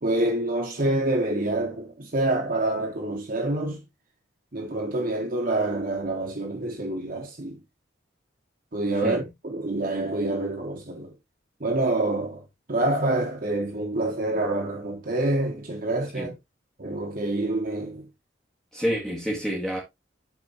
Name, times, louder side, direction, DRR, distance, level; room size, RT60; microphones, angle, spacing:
voice 1, 0.0-3.8 4.5-7.6 8.7-11.1 11.6-12.4 12.7-16.3 16.8-18.0, right 2 dB, 45° right, 1.3 m, -27 dB
voice 2, 18.7-19.8, equal, ahead, 2.0 m, -28 dB
12.0 x 4.6 x 3.0 m
head